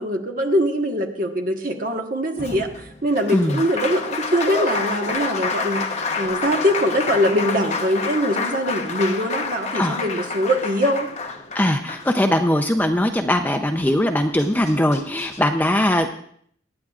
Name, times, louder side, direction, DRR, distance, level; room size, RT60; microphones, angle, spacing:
voice 1, 0.0-5.8 6.2-11.1, equal, 45° right, 3 dB, 1.3 m, -22 dB
Applause, 2.4-12.6 14.0-14.1 14.4-15.4, left 4 dB, 35° left, 0.9 m, -28 dB
voice 2, 3.3-3.6 9.7-10.0 11.5-16.2, left 1 dB, 10° left, 5 dB, 0.5 m, -20 dB
23.5 x 9.4 x 2.4 m, 0.63 s
head